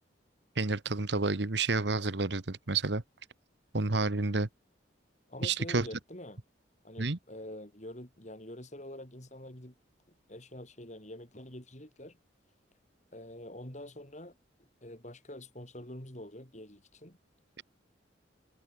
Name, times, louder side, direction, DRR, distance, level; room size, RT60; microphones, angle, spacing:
voice 1, 0.6-3.0 3.7-4.5 5.4-5.9 7.0-7.2, right 3 dB, 65° right, 1.3 m, -30 dB
voice 2, 5.3-6.4 6.8-9.8 10.3-12.2 13.1-17.2, left 1 dB, 40° left, 4.5 m, -46 dB
head